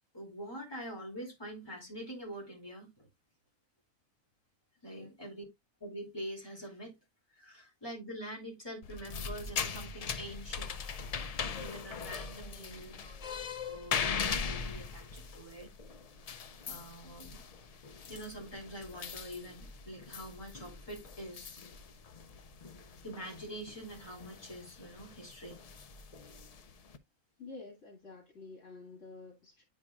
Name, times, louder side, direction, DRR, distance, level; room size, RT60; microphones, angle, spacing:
voice 1, 0.1-3.1 4.8-5.4 5.8-6.9 7.4-10.8 11.4-13.2 13.6-15.7 16.7-17.4 18.1-21.6 23.0-25.6, equal, 20° left, 2.9 m, -45 dB
sound 1, 8.8-27.0, left 6 dB, 55° left, 0.4 m, -41 dB
voice 2, 12.4-13.2 27.4-29.6, left 3 dB, 85° left, 2.4 m, -50 dB
9.6 x 4.5 x 2.3 m
omnidirectional pair, 1.2 m